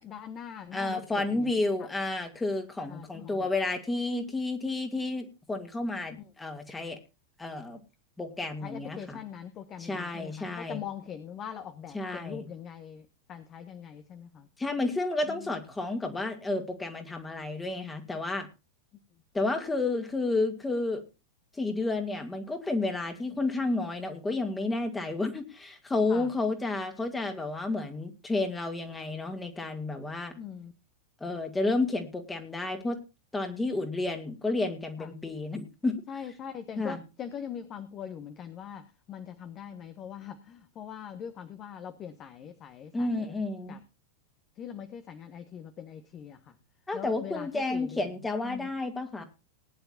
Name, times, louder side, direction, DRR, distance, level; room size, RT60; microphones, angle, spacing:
voice 1, 0.0-1.5 1.8-1.9 2.8-3.5 6.2-6.3 8.6-14.5 15.3-15.5 26.1-26.3 30.3-30.7 35.0-35.1 36.1-43.4 43.7-43.8 44.5-46.6 46.9-48.1 48.4-48.7, left 8 dB, 30° left, 9 dB, 1.4 m, -42 dB
voice 2, 0.7-7.0 7.4-7.8 8.2-9.2 9.8-10.8 11.9-12.4 14.6-18.5 19.3-21.0 21.6-30.3 31.2-33.0 33.3-35.9 36.8-37.0 42.9-43.8 46.9-49.2, left 2 dB, 10° left, 5 dB, 2.3 m, -31 dB
20.0 x 10.5 x 2.6 m, 0.29 s
figure-of-eight pair, 90°, 0 cm